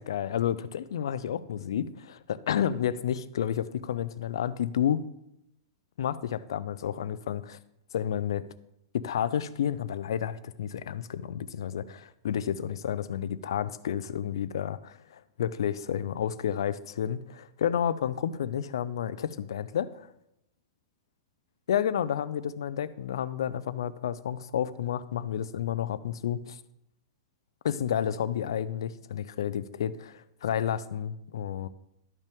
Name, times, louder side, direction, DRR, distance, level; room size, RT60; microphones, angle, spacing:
voice 1, 0.0-5.0 6.0-7.6 7.9-8.4 8.9-20.1 21.7-26.6 27.6-31.7, left 9 dB, 80° left, 16 dB, 0.4 m, -31 dB
12.0 x 5.5 x 3.5 m, 0.83 s
supercardioid pair, 170°, 2 cm